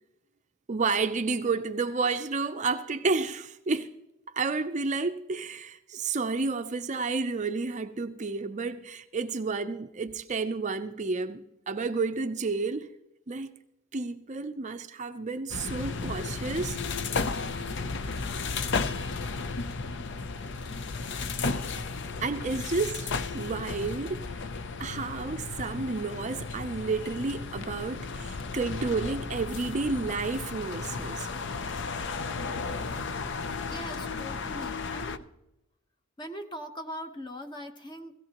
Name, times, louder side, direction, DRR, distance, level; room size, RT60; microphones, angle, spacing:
voice 1, 0.7-3.9 4.3-12.9 13.3-13.5 13.9-16.8 22.2-24.5 24.8-31.3 32.9-33.0, right 4 dB, 35° right, 0.5 m, -31 dB
sound 1, 15.5-35.2, left 4 dB, 55° left, 0.6 m, -34 dB
voice 2, 33.6-35.3 36.2-38.1, equal, 20° left, 1.0 m, -41 dB
16.5 x 16.5 x 2.9 m
head